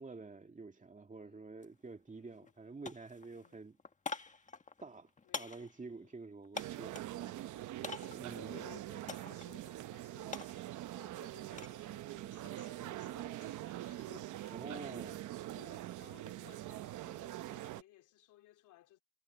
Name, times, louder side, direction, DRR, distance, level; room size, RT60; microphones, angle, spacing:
voice 1, 0.0-3.8 4.8-7.0 8.1-8.7 14.5-15.2, right 3 dB, 25° right, 2.4 m, -49 dB
voice 2, 1.2-1.6 2.1-2.5 3.2-3.6 5.2-5.6 6.0-6.1 7.1-8.0 8.3-10.6 10.9-19.0, left 14 dB, 90° left, 3.3 m, -60 dB
sound 1, 1.6-1.7 2.1-2.6 2.8-7.2 7.8-8.3 9.1-9.5 9.8-11.8 12.2-12.6, left 4 dB, 25° left, 1.6 m, -46 dB
sound 2, 6.5-17.8, right 14 dB, 80° right, 0.9 m, -44 dB
cardioid pair, 90°, 30 cm